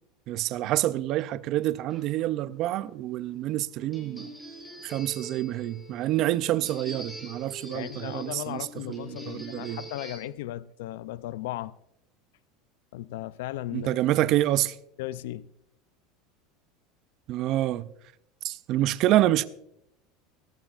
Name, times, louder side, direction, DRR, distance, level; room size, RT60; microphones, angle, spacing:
voice 1, 0.3-4.3 4.8-9.8 13.7-14.8 17.3-17.9 18.4-19.4, right 14 dB, 45° right, 0.4 m, -27 dB
sound 1, 1.9-10.2, right 1 dB, 5° left, 2.8 m, -44 dB
voice 2, 7.7-11.7 12.9-13.9 15.0-15.5, left 14 dB, 80° left, 0.4 m, -36 dB
17.5 x 14.5 x 2.4 m
supercardioid pair, 155°, 0 cm